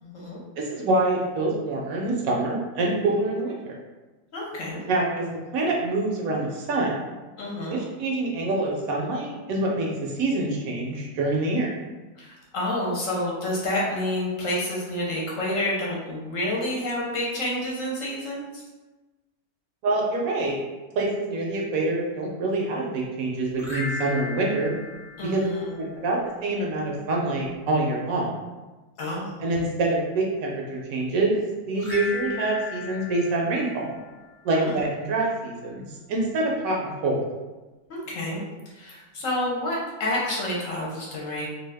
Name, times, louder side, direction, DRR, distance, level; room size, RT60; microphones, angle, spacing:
voice 1, 0.0-0.4 4.3-4.8 7.4-7.8 12.2-18.6 25.2-25.6 29.0-29.4 34.5-34.8 37.9-38.4 38.7-41.5, left 1 dB, 65° left, -4 dB, 1.0 m, -29 dB
voice 2, 0.6-3.8 4.9-7.0 7.7-11.7 19.8-20.6 21.0-24.7 25.2-25.4 25.8-28.3 29.4-33.9 34.4-37.2, right 2 dB, 70° right, -2 dB, 0.9 m, -26 dB
sound 1, 23.5-26.0 31.8-34.4, left 3 dB, 35° left, 1.0 m, -36 dB
2.6 x 2.3 x 3.3 m, 1.2 s
omnidirectional pair, 1.6 m